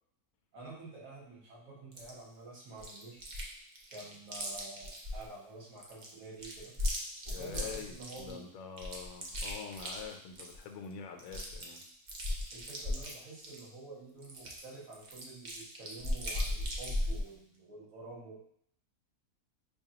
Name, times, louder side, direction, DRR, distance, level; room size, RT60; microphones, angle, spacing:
voice 1, 0.5-3.3 3.9-6.7 7.2-8.5 12.5-18.4, right 3 dB, 60° right, -5 dB, 1.5 m, -49 dB
Chewing mastication, 2.0-2.1 2.8-3.5 3.8-5.3 5.8-8.3 8.8-10.6 10.9-11.0 11.2-13.7 14.2-17.2, left 1 dB, 80° right, 0.4 m, -37 dB
voice 2, 7.3-11.8, left 6 dB, 70° left, 3 dB, 1.0 m, -45 dB
5.2 x 2.3 x 2.8 m, 0.66 s
omnidirectional pair, 1.7 m